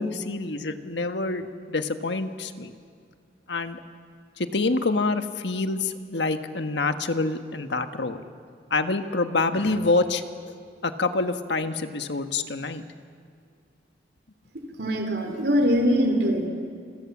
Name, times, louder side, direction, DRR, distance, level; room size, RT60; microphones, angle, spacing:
voice 1, 0.0-2.7 3.5-3.8 4.4-8.2 8.7-10.2 10.8-12.8, left 3 dB, 80° left, 8 dB, 1.4 m, -26 dB
voice 2, 14.5-16.5, equal, 65° right, 4 dB, 3.2 m, -23 dB
28.0 x 26.5 x 7.3 m, 2.2 s
head